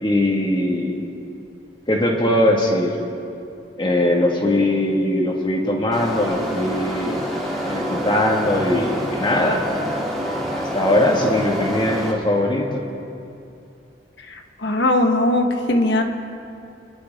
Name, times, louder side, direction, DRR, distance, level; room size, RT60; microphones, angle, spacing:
voice 1, 0.0-1.1 1.9-3.0 3.8-7.3 7.6-9.6 10.5-12.8, left 1 dB, 25° left, 0 dB, 1.8 m, -20 dB
sound 1, 5.9-12.1, equal, ahead, 2.5 m, -27 dB
voice 2, 14.3-16.0, left 1 dB, 75° left, 4 dB, 1.3 m, -19 dB
26.0 x 11.0 x 3.6 m, 2.6 s
head